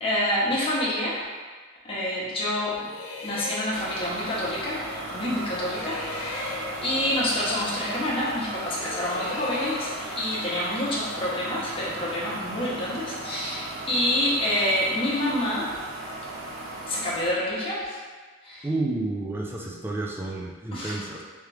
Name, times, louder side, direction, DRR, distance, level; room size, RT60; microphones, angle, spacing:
voice 1, 0.0-1.2 1.8-2.8 3.2-4.8 5.1-15.7 16.9-18.0 18.4-18.7 20.7-21.0, left 1 dB, 25° left, -7 dB, 0.9 m, -27 dB
sound 1, 2.7-5.4 5.7-8.3 8.7-12.4, left 3 dB, 85° left, 0.6 m, -40 dB
sound 2, 3.7-17.3, right 2 dB, 75° right, 0.6 m, -36 dB
voice 2, 18.6-21.2, right 2 dB, 10° right, -1 dB, 0.4 m, -30 dB
3.4 x 3.2 x 3.3 m, 1.4 s
head